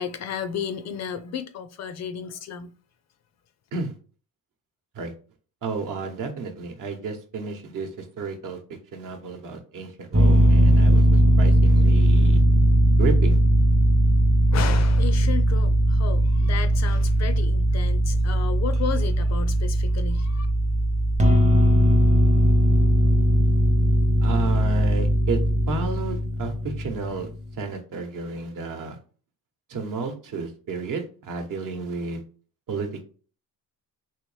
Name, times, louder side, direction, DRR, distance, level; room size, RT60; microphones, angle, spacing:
voice 1, 0.0-2.7 14.5-20.5, left 7 dB, 45° left, 0.4 m, -33 dB
voice 2, 5.6-8.6 8.9-12.4 13.0-13.4 24.2-25.4 25.7-27.3 27.6-29.0 29.7-32.2 32.7-33.1, right 4 dB, 55° right, 0.9 m, -32 dB
sound 1, 10.1-27.5, equal, 20° right, 0.6 m, -19 dB
3.1 x 2.9 x 3.1 m
cardioid pair, 95°, 38 cm